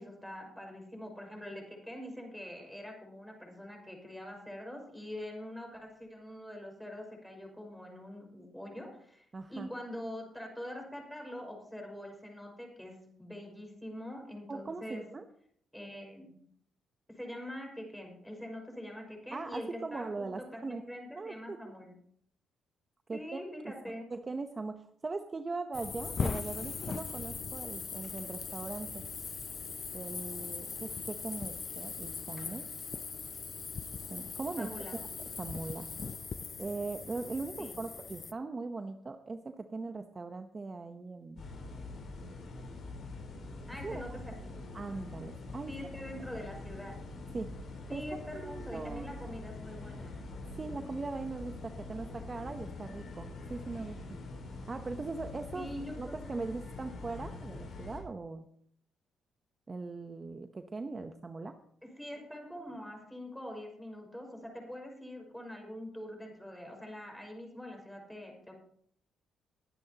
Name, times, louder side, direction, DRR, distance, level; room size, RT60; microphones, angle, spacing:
voice 1, 0.0-15.1 15.7-16.4 17.1-22.0 23.1-24.1 34.6-35.0 37.6-37.8 43.7-44.6 45.7-47.0 47.9-50.2 55.5-56.2 61.8-68.5, left 1 dB, 5° left, 1 dB, 5.7 m, -44 dB
voice 2, 9.3-9.7 14.5-15.2 19.3-20.8 21.2-21.6 23.1-23.4 24.1-29.0 29.9-32.7 34.1-35.0 35.4-35.9 36.6-41.4 43.8-44.0 44.7-45.7 47.3-47.5 47.9-48.0 48.3-49.1 50.6-54.2 54.7-55.7 56.0-58.5 59.7-61.5, right 3 dB, 30° right, 6 dB, 0.9 m, -40 dB
sound 1, 25.7-38.3, left 5 dB, 40° left, 0.6 m, -40 dB
sound 2, 41.4-58.0, left 2 dB, 55° left, 5.2 m, -44 dB
21.5 x 10.5 x 2.9 m, 0.64 s
cardioid pair, 90°, 0 cm